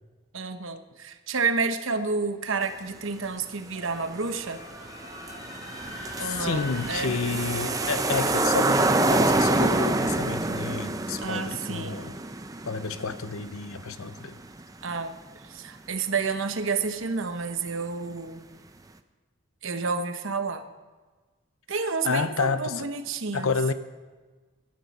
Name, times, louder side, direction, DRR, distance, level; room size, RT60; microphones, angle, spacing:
voice 1, 0.3-4.6 6.2-7.1 11.2-12.0 14.8-15.2 15.4-18.4 19.6-20.7 21.7-23.5, right 4 dB, 60° right, 9 dB, 0.9 m, -30 dB
sound 1, 2.4-12.3, left 1 dB, 55° left, 4.0 m, -43 dB
sound 2, 4.4-4.5 4.8-14.6 14.9-15.0, right 2 dB, 15° right, 0.5 m, -27 dB
voice 2, 6.2-12.1 12.6-14.4 22.0-22.9 23.3-23.7, left 4 dB, 75° left, 12 dB, 0.7 m, -30 dB
18.0 x 11.5 x 4.2 m, 1.3 s
head